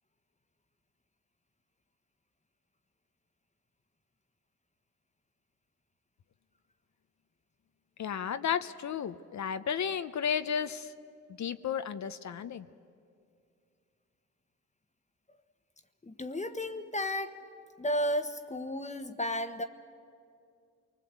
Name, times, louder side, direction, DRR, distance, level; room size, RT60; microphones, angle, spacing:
voice 1, 8.0-10.9 11.4-12.7, left 7 dB, 60° left, 11 dB, 0.8 m, -33 dB
voice 2, 16.0-17.4 17.8-19.6, equal, 20° left, 7 dB, 1.3 m, -33 dB
29.0 x 20.5 x 8.2 m, 2.4 s
cardioid pair, 70°, 32 cm